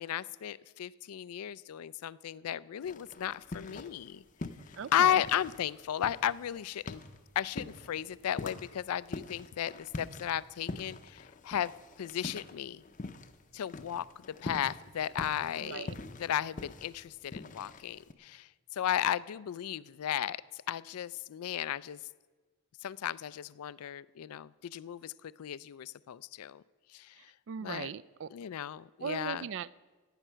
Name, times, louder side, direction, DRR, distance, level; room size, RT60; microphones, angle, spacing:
voice 1, 0.0-4.2 4.9-7.0 7.4-11.7 12.0-12.8 13.5-15.9 16.2-22.0 22.8-26.6 26.9-27.3 27.6-27.9 28.3-29.5, left 10 dB, 85° left, 19 dB, 0.4 m, -34 dB
sound 1, 2.8-4.1 4.4-13.4 13.7-18.1, left 3 dB, 35° left, 0.6 m, -43 dB
voice 2, 4.8-5.2 15.6-15.9 27.5-28.3 29.0-29.8, right 6 dB, 55° right, 20 dB, 0.3 m, -39 dB
15.0 x 9.9 x 5.6 m, 1.3 s
head